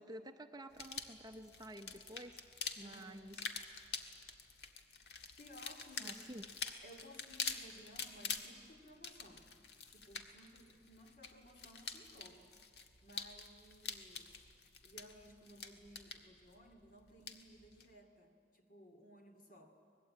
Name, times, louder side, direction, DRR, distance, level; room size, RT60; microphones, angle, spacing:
voice 1, 0.0-2.4 2.8-3.4 6.0-6.5, right 1 dB, 20° right, 6 dB, 0.7 m, -51 dB
sound 1, 0.7-17.9, left 5 dB, 65° left, 1.6 m, -47 dB
voice 2, 2.8-3.4 5.4-6.2 6.8-9.5 9.9-12.5 13.0-14.3 14.8-19.8, equal, 45° left, 4 dB, 2.5 m, -58 dB
24.5 x 20.5 x 8.7 m, 2.4 s
head